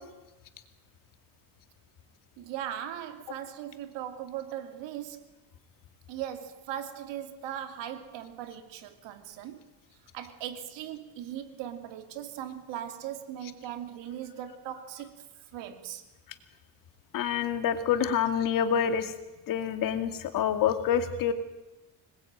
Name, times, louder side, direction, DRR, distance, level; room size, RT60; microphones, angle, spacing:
voice 1, 2.4-5.2 6.1-9.7 10.1-15.1 15.5-16.0, right 10 dB, 75° right, 7 dB, 2.9 m, -39 dB
voice 2, 17.1-19.1 19.5-21.3, left 8 dB, 45° left, 8 dB, 2.3 m, -27 dB
26.0 x 20.5 x 9.0 m, 1.0 s
cardioid pair, 180°, 44 cm